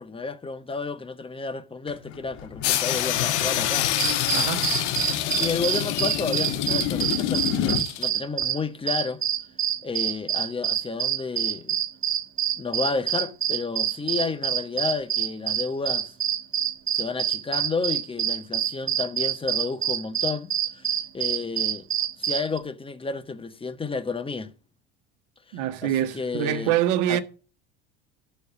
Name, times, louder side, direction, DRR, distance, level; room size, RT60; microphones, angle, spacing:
voice 1, 0.0-3.9 5.3-9.2 9.8-11.8 12.6-16.1 16.9-21.8 22.2-24.5 25.5-26.8 27.1-27.2, left 4 dB, 15° left, 1.2 m, -31 dB
sound 1, 1.9-7.9, left 8 dB, 50° left, 2.1 m, -30 dB
sound 2, 2.6-8.1, left 13 dB, 75° left, 1.3 m, -28 dB
sound 3, 4.0-8.6 8.9-22.6, right 10 dB, 35° right, 1.4 m, -26 dB
voice 2, 4.3-4.7 25.5-27.2, right 11 dB, 60° right, 1.4 m, -25 dB
11.5 x 4.6 x 8.0 m
hypercardioid pair, 80°, 34 cm